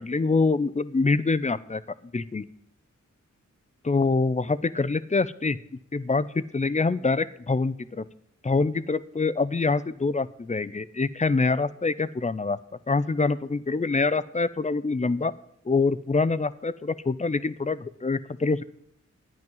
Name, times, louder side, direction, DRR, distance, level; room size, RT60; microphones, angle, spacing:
voice 1, 0.0-1.8 2.1-2.5 3.8-5.6 5.9-8.0 8.4-12.6 12.9-15.3 15.7-18.6, left 3 dB, 25° left, 15 dB, 0.6 m, -25 dB
11.0 x 9.2 x 5.5 m, 0.73 s
cardioid pair, 45°, 31 cm